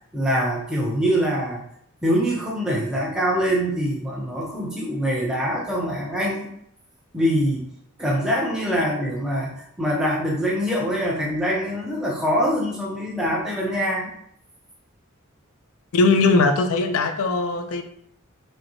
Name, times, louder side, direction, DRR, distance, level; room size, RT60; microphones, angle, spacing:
voice 1, 0.1-1.6 2.0-6.5 7.1-7.7 8.0-14.1, equal, 5° right, -4 dB, 0.7 m, -24 dB
voice 2, 15.9-17.8, left 3 dB, 75° left, 7 dB, 0.4 m, -19 dB
5.0 x 2.1 x 3.0 m, 0.69 s
head